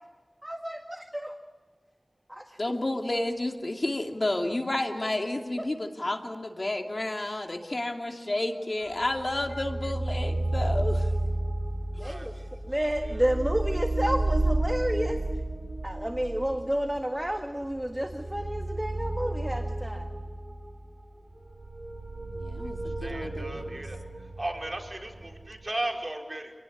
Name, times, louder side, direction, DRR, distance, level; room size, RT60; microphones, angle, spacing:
voice 1, 0.4-1.3 2.3-2.6 5.0-5.1 12.0-12.3 12.6-15.2 15.8-20.1, equal, 15° right, 5 dB, 1.7 m, -30 dB
voice 2, 2.6-11.1 12.0-12.1 22.3-23.8, left 1 dB, 55° left, 4 dB, 2.6 m, -31 dB
sound 1, 9.0-25.7, right 2 dB, 80° right, 6.0 m, -32 dB
voice 3, 12.0-12.5 13.0-13.2 22.8-24.0 24.4-26.5, right 1 dB, 45° right, 1 dB, 4.8 m, -36 dB
27.5 x 19.0 x 8.3 m, 1.5 s
wide cardioid pair, 45°, 0 cm